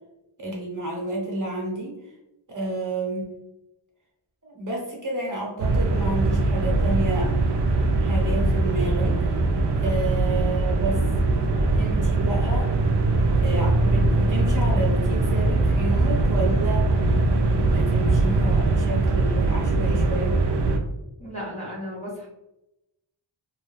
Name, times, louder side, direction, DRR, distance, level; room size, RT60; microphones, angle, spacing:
voice 1, 0.4-2.0 2.5-3.2 4.4-7.3 8.0-9.4 9.8-11.0 11.7-12.7 13.4-16.9 17.5-20.4, right 2 dB, 40° right, -2 dB, 1.0 m, -30 dB
sound 1, 5.6-20.8, right 2 dB, 60° right, 0.5 m, -21 dB
voice 2, 21.2-22.3, equal, 15° left, -6 dB, 1.3 m, -34 dB
2.5 x 2.2 x 3.2 m, 0.91 s
wide cardioid pair, 105°, 48 cm